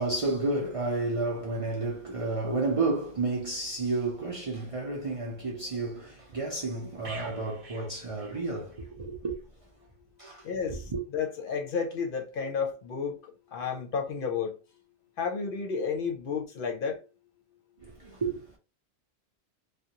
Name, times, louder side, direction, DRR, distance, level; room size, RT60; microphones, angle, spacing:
voice 1, 0.0-9.4 10.2-10.4 10.9-11.0 17.8-18.6, right 3 dB, 40° right, 0.5 m, -31 dB
sound 1, 7.0-8.9 9.3-9.5, right 2 dB, 60° right, 0.9 m, -46 dB
voice 2, 10.4-14.6 15.2-17.0, left 6 dB, 60° left, 0.7 m, -32 dB
2.4 x 2.1 x 2.8 m
omnidirectional pair, 1.1 m